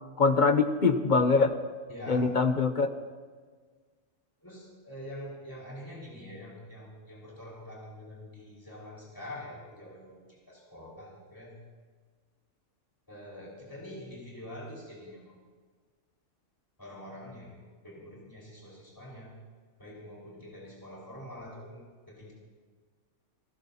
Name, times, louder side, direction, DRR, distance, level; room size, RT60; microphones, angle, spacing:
voice 1, 0.0-1.5 2.1-2.9, left 4 dB, 45° left, 8 dB, 1.0 m, -23 dB
voice 2, 1.9-2.3 4.4-11.6 13.1-15.3 16.8-19.4 19.8-22.3, left 1 dB, 15° left, -5 dB, 5.0 m, -45 dB
29.0 x 15.0 x 2.9 m, 1.5 s
omnidirectional pair, 1.3 m